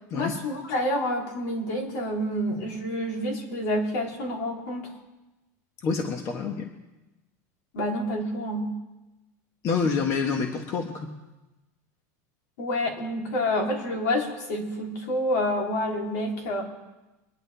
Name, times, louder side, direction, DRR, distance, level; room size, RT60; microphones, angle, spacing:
voice 1, 0.1-4.9 7.7-8.7 12.6-16.6, left 1 dB, 75° left, 0 dB, 3.3 m, -28 dB
voice 2, 5.8-6.7 9.6-11.1, left 5 dB, 35° left, 4 dB, 1.3 m, -27 dB
24.5 x 10.5 x 3.4 m, 1.0 s
supercardioid pair, 155°, 9 cm